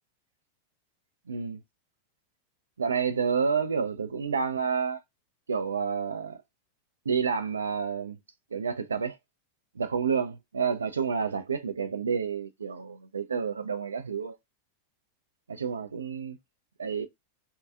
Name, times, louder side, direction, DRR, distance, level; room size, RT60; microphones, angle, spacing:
voice 1, 1.3-1.6 2.8-5.0 5.5-6.4 7.1-8.2 8.5-9.2 9.8-14.4 15.5-16.4 16.8-17.1, right 6 dB, 70° right, 0.3 m, -29 dB
3.6 x 2.3 x 2.3 m
figure-of-eight pair, 90°, 0 cm